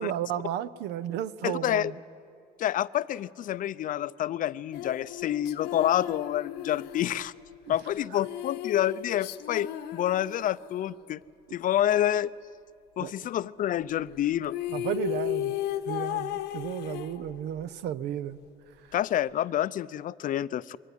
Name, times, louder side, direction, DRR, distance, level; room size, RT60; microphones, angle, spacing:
voice 1, 0.0-2.0 7.7-7.8 8.1-8.2 13.0-13.1 14.7-15.6 15.9-18.4, right 11 dB, 85° right, 16 dB, 0.7 m, -33 dB
voice 2, 1.4-1.9 2.6-7.3 7.7-11.2 11.5-12.3 13.0-14.6 18.9-20.8, left 11 dB, 55° left, 17 dB, 0.5 m, -28 dB
sound 1, 4.7-10.9 14.1-14.2 14.4-17.6, left 13 dB, 80° left, 0.9 m, -35 dB
22.5 x 16.0 x 10.0 m, 2.4 s
cardioid pair, 110°, 17 cm